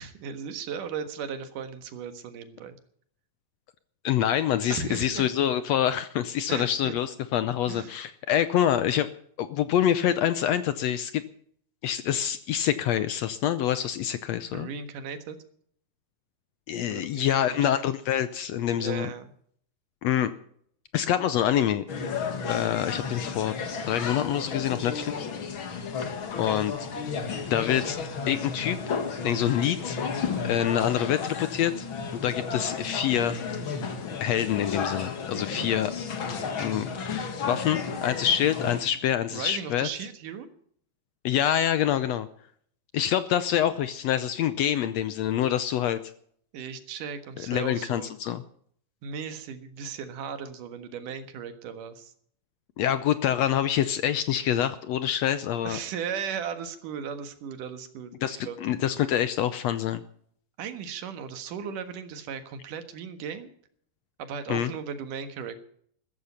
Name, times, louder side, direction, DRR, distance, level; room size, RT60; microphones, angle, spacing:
voice 1, 0.0-2.8 4.7-5.2 6.5-6.9 7.7-7.9 14.5-15.4 16.9-17.7 18.8-19.3 35.3-35.7 39.3-40.5 46.5-48.1 49.0-52.1 55.6-58.6 60.6-63.5 64.2-65.6, right 7 dB, 85° right, 9 dB, 3.1 m, -36 dB
voice 2, 4.0-9.1 9.4-11.2 11.8-14.7 16.7-19.1 20.0-20.3 20.9-21.8 22.5-23.5 23.9-25.3 26.4-26.9 27.5-28.0 28.3-28.8 29.2-30.0 30.4-31.9 32.1-33.4 34.2-35.9 36.2-36.3 36.6-39.9 41.2-42.3 42.9-46.0 47.5-48.4 52.8-55.8 58.2-60.0 64.5-64.7, left 10 dB, 75° left, 13 dB, 1.7 m, -26 dB
sound 1, 21.9-38.8, left 5 dB, 45° left, 2.2 m, -33 dB
14.5 x 14.5 x 5.7 m, 0.62 s
omnidirectional pair, 3.6 m